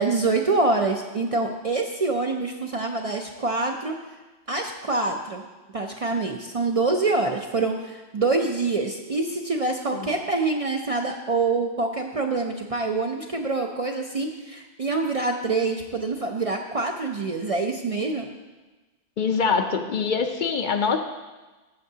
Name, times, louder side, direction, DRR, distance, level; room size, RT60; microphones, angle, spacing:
voice 1, 0.0-3.9 4.5-5.5 5.7-18.3, right 3 dB, 45° right, 2 dB, 0.5 m, -25 dB
voice 2, 19.2-21.0, left 5 dB, 55° left, 6 dB, 0.6 m, -24 dB
12.5 x 7.6 x 2.7 m, 1.2 s
omnidirectional pair, 1.1 m